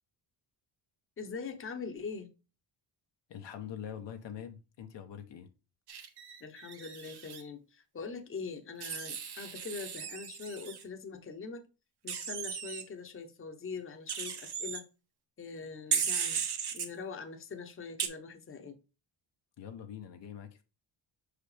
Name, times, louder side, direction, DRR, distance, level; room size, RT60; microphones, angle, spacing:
voice 1, 1.2-2.3 6.4-11.7 12.0-14.8 15.4-16.4 16.7-18.7, left 5 dB, 25° left, 0.9 m, -42 dB
voice 2, 3.3-5.5 19.6-20.6, left 9 dB, 65° left, 0.9 m, -44 dB
Wild animals, 5.9-7.4 8.8-10.8 12.1-12.8 14.1-14.8 15.9-16.9 18.0-18.1, right 7 dB, 55° right, 1.1 m, -36 dB
5.7 x 5.0 x 3.3 m
cardioid pair, 125°, 46 cm